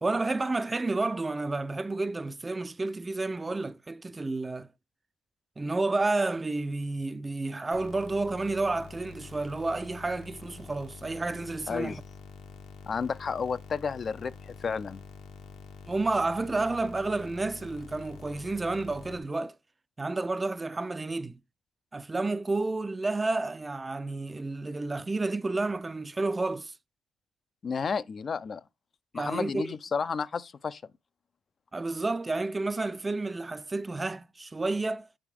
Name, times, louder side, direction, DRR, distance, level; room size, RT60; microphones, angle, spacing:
voice 1, 0.0-4.7 5.6-11.9 15.9-19.5 20.0-21.4 21.9-26.7 29.2-29.7 31.7-35.1, right 3 dB, 20° right, 0.4 m, -30 dB
sound 1, 7.7-19.2, left 5 dB, 85° left, 1.8 m, -47 dB
voice 2, 11.7-12.0 12.9-15.0 27.6-28.6 29.1-30.8, left 5 dB, 45° left, 0.5 m, -32 dB
8.4 x 4.9 x 3.5 m
cardioid pair, 90°, 0 cm